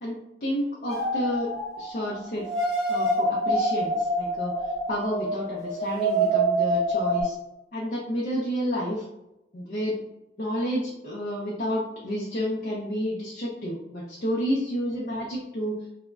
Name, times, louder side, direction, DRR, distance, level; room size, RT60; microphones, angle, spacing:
voice 1, 0.0-1.5 1.8-2.5 2.9-7.4 7.7-9.0 9.5-10.0 10.4-15.8, equal, 45° left, -4 dB, 0.5 m, -30 dB
sound 1, 0.9-2.0 2.4-7.2, right 1 dB, ahead, 0.8 m, -26 dB
3.5 x 2.0 x 2.2 m, 0.88 s
head